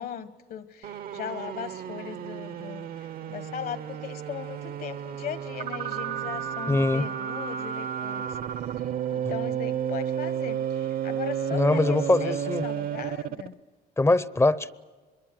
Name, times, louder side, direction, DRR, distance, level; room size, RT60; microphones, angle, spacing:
voice 1, 0.0-8.3 9.1-13.6, left 9 dB, 60° left, 1.4 m, -38 dB
sound 1, 0.8-13.5, right 9 dB, 60° right, 0.8 m, -32 dB
voice 2, 6.7-7.1 9.3-9.4 11.5-12.7 14.0-14.7, left 2 dB, 15° left, 0.7 m, -23 dB
26.0 x 22.5 x 7.6 m
cardioid pair, 110°, 17 cm